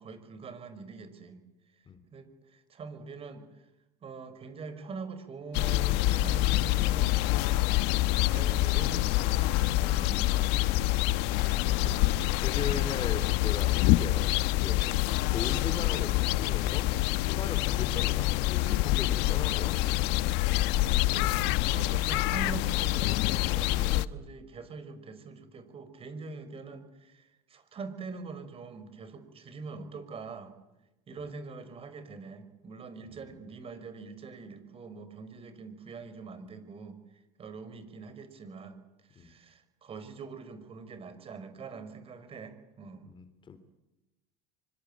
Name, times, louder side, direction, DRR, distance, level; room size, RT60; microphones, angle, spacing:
voice 1, 0.0-1.4 1.8-1.9 2.1-3.6 4.0-7.2 8.1-10.8 11.4-12.2 12.6-12.9 20.6-30.5 31.1-37.0 37.4-43.1, right 4 dB, 30° right, 11 dB, 5.4 m, -44 dB
sound 1, 5.5-24.1, left 16 dB, 65° left, 1.2 m, -26 dB
voice 2, 12.4-15.0 15.3-16.9 17.2-19.9 33.0-33.4 39.2-39.3 43.1-43.6, left 5 dB, 25° left, 12 dB, 3.4 m, -39 dB
26.5 x 25.0 x 8.8 m, 0.97 s
supercardioid pair, 130°, 19 cm